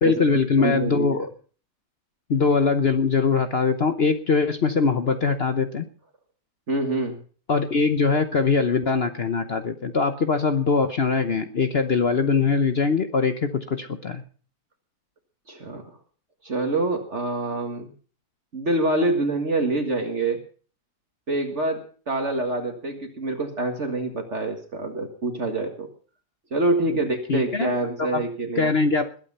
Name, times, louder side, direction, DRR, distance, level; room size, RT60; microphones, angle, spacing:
voice 1, 0.0-1.3 2.3-5.9 7.5-14.2 26.9-27.7 28.0-28.2 28.6-29.1, left 4 dB, 45° left, 8 dB, 0.9 m, -22 dB
voice 2, 0.6-1.1 6.7-7.2 15.5-15.8 16.4-17.9 18.5-20.4 21.3-25.9 26.5-28.7, right 2 dB, 45° right, 4 dB, 2.0 m, -26 dB
21.0 x 8.9 x 5.5 m, 0.42 s
omnidirectional pair, 1.8 m